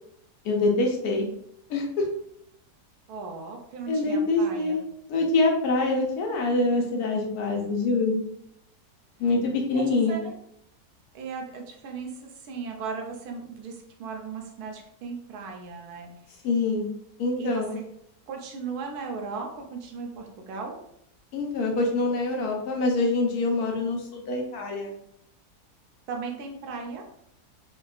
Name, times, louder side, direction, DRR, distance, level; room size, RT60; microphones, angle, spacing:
voice 1, 0.4-1.3 1.7-2.0 3.9-4.8 5.1-8.3 9.2-10.2 16.4-16.9 17.2-17.8 21.3-24.9, left 3 dB, 75° left, 1 dB, 1.1 m, -25 dB
voice 2, 3.1-4.8 9.7-10.3 11.1-16.1 17.4-17.8 18.3-20.8 26.1-27.1, right 5 dB, 75° right, 2 dB, 1.1 m, -37 dB
3.4 x 2.2 x 2.3 m, 0.73 s
omnidirectional pair, 1.7 m